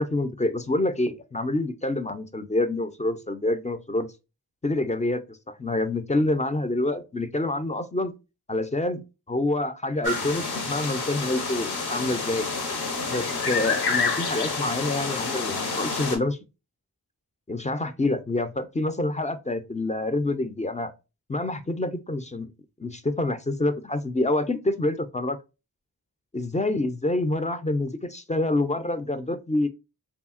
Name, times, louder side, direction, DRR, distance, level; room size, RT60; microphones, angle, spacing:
voice 1, 0.0-4.1 4.6-8.1 8.5-12.5 13.0-16.4 17.5-20.9 21.3-22.5 22.8-25.4 26.3-29.7, left 2 dB, 20° left, 0.3 m, -27 dB
sound 1, 10.0-16.2, left 4 dB, 80° left, 0.7 m, -28 dB
2.7 x 2.7 x 2.3 m
cardioid pair, 40°, 39 cm